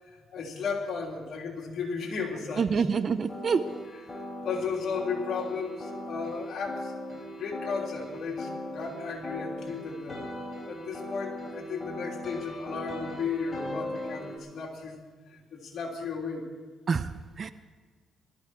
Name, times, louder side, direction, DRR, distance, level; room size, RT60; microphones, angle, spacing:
voice 1, 0.0-2.9 3.9-6.9 7.4-10.3 10.7-15.0 15.3-16.5, left 5 dB, 65° left, -1 dB, 3.5 m, -35 dB
voice 2, 2.6-3.6 16.9-17.1 17.4-17.5, right 5 dB, 45° right, 12 dB, 0.8 m, -26 dB
sound 1, 3.3-14.4, left 1 dB, 25° left, 4.1 m, -39 dB
20.5 x 13.5 x 4.6 m, 1.5 s
cardioid pair, 90°, 0 cm